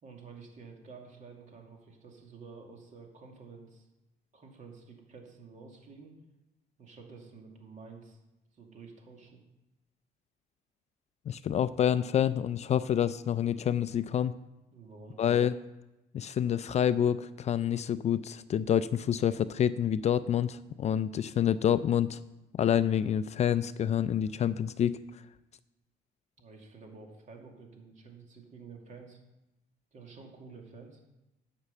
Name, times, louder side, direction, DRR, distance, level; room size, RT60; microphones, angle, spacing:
voice 1, 0.0-3.9 4.3-6.1 6.8-8.2 8.5-9.4 14.7-15.2 26.4-29.2 29.9-31.0, right 4 dB, 45° right, 1 dB, 2.5 m, -50 dB
voice 2, 11.3-14.3 15.2-15.5 16.1-22.2 22.5-25.0, left 9 dB, 40° left, 15 dB, 0.4 m, -27 dB
9.6 x 6.0 x 7.1 m, 0.97 s
cardioid pair, 110°, 17 cm